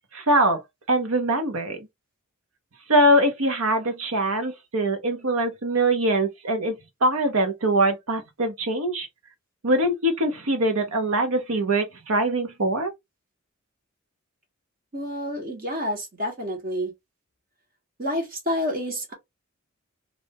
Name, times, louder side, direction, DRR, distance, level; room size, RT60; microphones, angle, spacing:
voice 1, 0.1-0.6 0.9-1.9 2.9-6.8 7.0-9.1 9.6-12.9, right 1 dB, 85° right, 1.0 m, -23 dB
voice 2, 14.9-16.9 18.0-19.1, equal, 40° right, 1.3 m, -29 dB
2.6 x 2.6 x 3.5 m
head